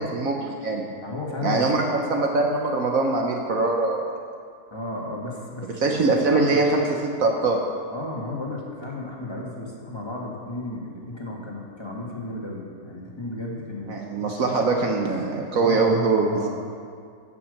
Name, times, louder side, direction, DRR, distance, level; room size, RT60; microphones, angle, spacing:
voice 1, 0.0-0.9 1.4-1.8 2.1-4.0 5.8-7.6 13.9-16.5, right 3 dB, 65° right, 1 dB, 1.3 m, -22 dB
voice 2, 1.0-2.0 4.7-6.0 6.3-6.8 7.9-14.0 15.5-16.5, left 2 dB, 15° left, -3 dB, 1.9 m, -33 dB
15.5 x 5.9 x 6.5 m, 2.1 s
omnidirectional pair, 1.6 m